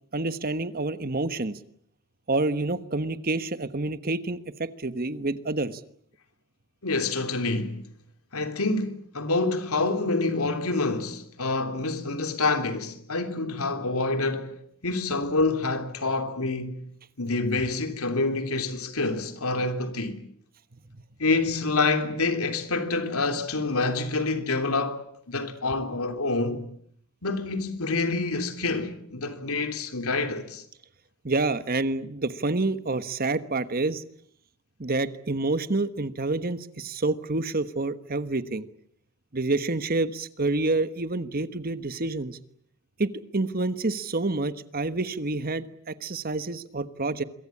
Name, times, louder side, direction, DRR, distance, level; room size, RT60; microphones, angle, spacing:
voice 1, 0.1-1.6 2.3-5.8 31.2-34.0 34.8-38.7 39.3-42.4 43.0-47.2, right 2 dB, 40° right, 1.3 m, -28 dB
voice 2, 6.8-7.7 8.3-14.5 14.8-16.9 17.2-20.2 21.2-26.6 27.2-30.6, left 3 dB, 80° left, 3.3 m, -27 dB
26.5 x 23.5 x 8.6 m
head